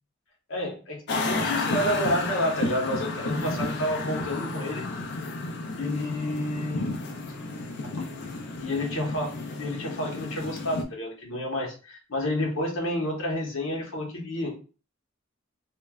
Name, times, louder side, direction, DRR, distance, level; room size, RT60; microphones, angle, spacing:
voice 1, 0.5-4.9 5.7-6.9 7.9-8.1 8.6-14.5, left 1 dB, 75° left, -1 dB, 0.9 m, -30 dB
sound 1, 1.1-10.8, left 2 dB, 55° left, 0.4 m, -32 dB
3.1 x 2.1 x 2.3 m, 0.36 s
head